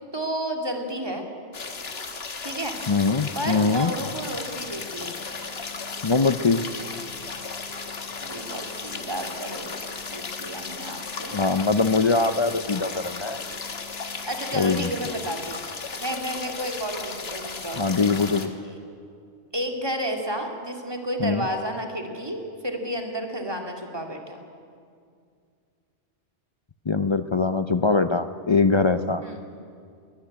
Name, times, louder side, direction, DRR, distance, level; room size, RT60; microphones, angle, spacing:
voice 1, 0.1-1.3 2.4-2.8 3.3-5.2 8.2-9.8 10.1-11.3 14.3-15.6 16.0-18.1 18.6-18.7 19.5-24.4 29.2-29.4, right 1 dB, 20° right, 3 dB, 2.2 m, -31 dB
sound 1, 1.5-18.5, left 4 dB, 60° left, 1.6 m, -35 dB
voice 2, 2.9-3.9 6.0-6.6 11.3-13.4 14.5-14.9 17.8-18.5 21.2-21.5 26.9-29.2, left 4 dB, 40° left, 10 dB, 0.4 m, -22 dB
22.0 x 13.5 x 9.8 m, 2.3 s
omnidirectional pair, 1.2 m